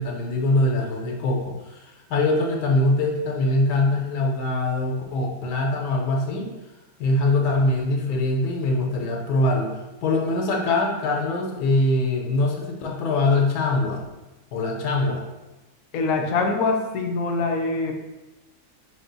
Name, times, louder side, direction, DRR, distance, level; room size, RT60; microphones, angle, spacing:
voice 1, 0.0-6.5 7.0-14.0 14.5-15.2, left 2 dB, 90° left, 0 dB, 1.2 m, -23 dB
voice 2, 15.9-17.9, left 3 dB, 70° left, 3 dB, 0.9 m, -24 dB
4.2 x 2.2 x 3.9 m, 1.0 s
omnidirectional pair, 1.7 m